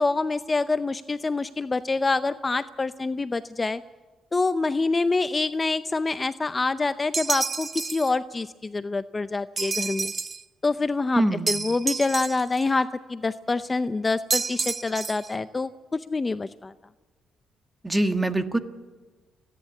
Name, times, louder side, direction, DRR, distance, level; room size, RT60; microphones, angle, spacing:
voice 1, 0.0-3.8 4.3-10.1 10.6-16.7, left 3 dB, 25° left, 13 dB, 0.6 m, -26 dB
sound 1, 7.1-8.1 9.6-10.4 11.5-12.6 14.3-15.3, right 4 dB, 35° right, 0.6 m, -29 dB
voice 2, 11.1-11.6 17.8-18.6, right 1 dB, 15° right, 9 dB, 1.4 m, -23 dB
29.5 x 11.0 x 8.4 m, 1.3 s
cardioid pair, 90°, 0 cm